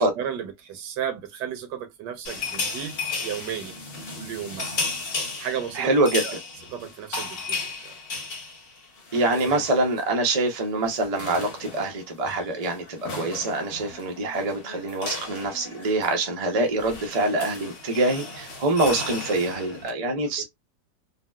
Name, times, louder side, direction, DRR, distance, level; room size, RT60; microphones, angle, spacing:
voice 1, 0.0-3.0 3.2-3.8 4.2-4.7 5.4-5.9 6.2-6.3 6.7-7.9 20.2-20.4, right 9 dB, 90° right, 1.4 m, -34 dB
sound 1, 2.2-10.1 10.4-10.6 10.8-19.9, left 3 dB, 45° left, 1.0 m, -35 dB
voice 2, 5.7-6.4 9.1-20.4, right 2 dB, 50° right, 0.4 m, -25 dB
3.9 x 2.1 x 2.2 m
omnidirectional pair, 1.8 m